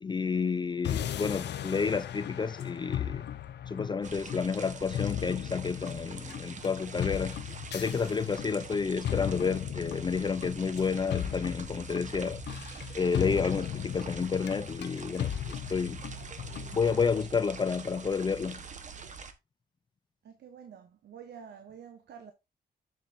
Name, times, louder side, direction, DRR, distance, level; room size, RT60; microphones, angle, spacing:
voice 1, 0.0-3.2 3.7-7.4 7.7-12.4 12.9-16.0 16.7-18.6, left 5 dB, 25° left, 0.4 m, -30 dB
sound 1, 0.8-17.2, left 10 dB, 85° left, 0.6 m, -37 dB
sound 2, 4.0-19.3, right 5 dB, 45° right, 1.0 m, -45 dB
voice 2, 20.2-22.3, right 7 dB, 80° right, 1.1 m, -48 dB
7.4 x 7.3 x 2.5 m
wide cardioid pair, 130°, 17 cm